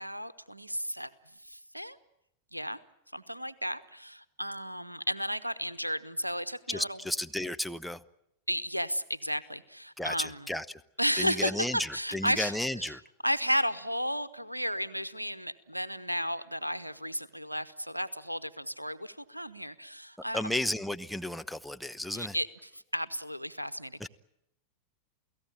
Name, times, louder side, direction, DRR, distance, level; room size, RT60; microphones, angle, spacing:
voice 1, 0.0-2.0 2.5-2.8 3.1-7.0 8.5-10.4 11.0-13.0 13.2-20.6 22.1-24.1, equal, 90° right, 17 dB, 1.0 m, -33 dB
voice 2, 6.7-8.0 10.0-10.8 11.2-13.0 20.3-22.3 24.0-24.1, left 1 dB, ahead, 8 dB, 0.8 m, -33 dB
29.0 x 17.5 x 9.0 m, 0.83 s
figure-of-eight pair, 90°, 0 cm